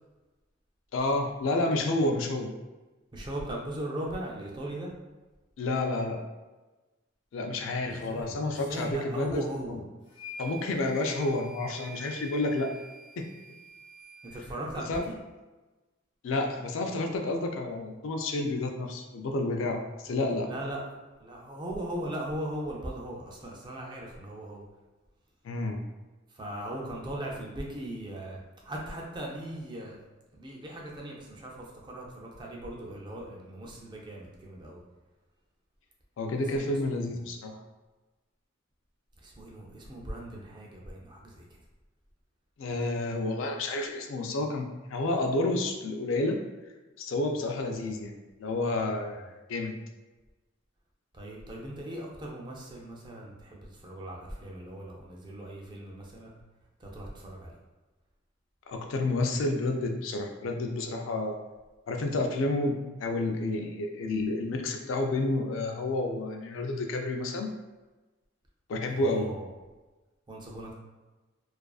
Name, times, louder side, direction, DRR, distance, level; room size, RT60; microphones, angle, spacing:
voice 1, 0.9-2.5 5.6-6.2 7.3-9.8 10.4-12.7 13.2-13.3 14.9-15.0 16.2-20.5 25.4-25.8 36.2-37.6 42.6-46.4 47.0-48.1 48.4-49.8 58.7-61.4 61.9-67.5 68.7-69.3, left 2 dB, 75° left, 3 dB, 0.3 m, -30 dB
voice 2, 3.1-4.9 7.9-9.8 14.2-15.2 20.5-20.8 21.2-24.6 26.3-28.4 28.6-30.0 30.3-34.8 36.4-37.2 39.2-41.6 51.1-56.3 56.8-57.5 69.0-69.5 70.3-70.7, right 1 dB, 25° right, -2 dB, 0.4 m, -39 dB
sound 1, 10.1-14.4, right 1 dB, 60° left, 0.8 m, -47 dB
2.4 x 2.3 x 2.3 m, 1.2 s
head